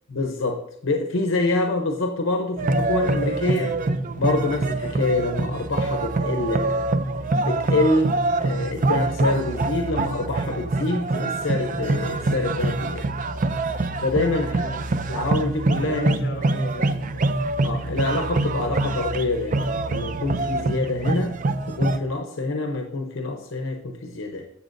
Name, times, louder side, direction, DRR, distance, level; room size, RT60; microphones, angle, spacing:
voice 1, 0.1-3.8 4.2-6.9 7.4-13.1 14.0-14.6 15.1-16.1 17.6-21.4 21.7-24.5, left 2 dB, 80° left, 4 dB, 0.9 m, -26 dB
sound 1, 2.6-22.0, right 2 dB, 40° right, 0.5 m, -25 dB
voice 2, 14.4-14.9 15.8-17.3, equal, 55° left, 3 dB, 1.5 m, -38 dB
14.0 x 7.1 x 2.6 m, 0.70 s
head